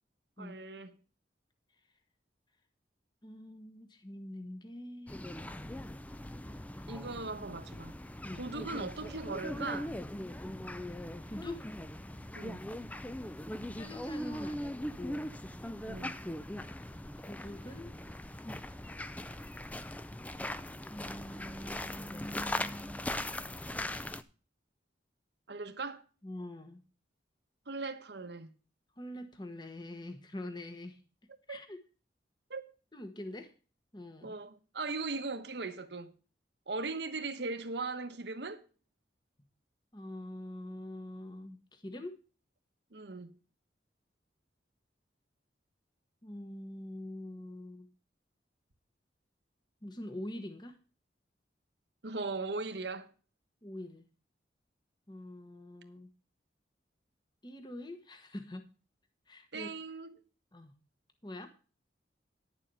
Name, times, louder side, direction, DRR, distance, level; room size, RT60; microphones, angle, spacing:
voice 1, 0.4-1.0 6.9-8.0 8.3-10.0 12.4-12.7 15.8-16.2 25.5-26.0 27.7-28.5 31.5-31.6 32.5-32.7 34.2-36.1 36.7-38.6 42.9-43.4 52.0-53.1 59.5-60.1, right 3 dB, 70° right, 1.2 m, -39 dB
voice 2, 3.2-5.3 8.2-8.4 11.2-11.7 13.7-15.3 17.3-17.9 20.9-23.0 26.2-26.8 29.0-31.0 31.5-31.8 32.9-33.5 33.9-34.4 39.9-42.2 46.2-47.9 49.8-50.8 53.6-54.1 55.1-56.1 57.4-58.6 59.3-59.7 60.5-60.7 61.2-61.5, left 1 dB, 25° left, 1.2 m, -44 dB
sound 1, 5.1-24.2, left 1 dB, 10° left, 0.4 m, -40 dB
10.5 x 7.3 x 5.4 m
head